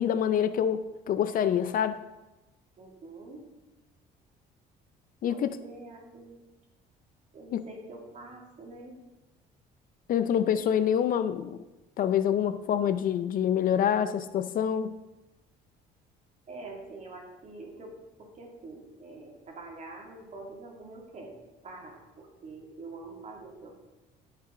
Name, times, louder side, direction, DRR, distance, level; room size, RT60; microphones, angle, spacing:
voice 1, 0.0-2.0 5.2-5.5 7.5-7.7 10.1-11.6 12.0-15.0, left 9 dB, 55° left, 12 dB, 0.5 m, -26 dB
voice 2, 2.8-3.5 5.3-6.4 7.3-9.0 16.5-23.8, right 2 dB, 45° right, 0 dB, 2.4 m, -45 dB
13.0 x 5.8 x 3.8 m, 1.1 s
cardioid pair, 110°, 17 cm